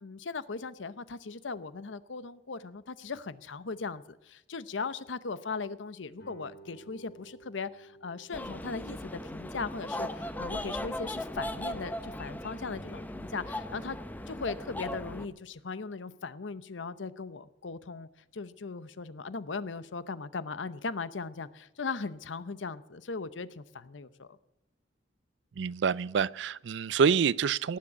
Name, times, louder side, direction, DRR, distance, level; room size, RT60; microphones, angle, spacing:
voice 1, 0.0-14.0 14.3-24.4, left 4 dB, 80° left, 0.8 m, -38 dB
Guitar, 6.2-11.6, right 3 dB, 65° left, 5.3 m, -56 dB
sound 1, 8.3-15.3, left 1 dB, 10° left, 0.8 m, -38 dB
voice 2, 25.6-27.8, right 6 dB, 70° right, 0.4 m, -27 dB
18.5 x 7.5 x 8.5 m
head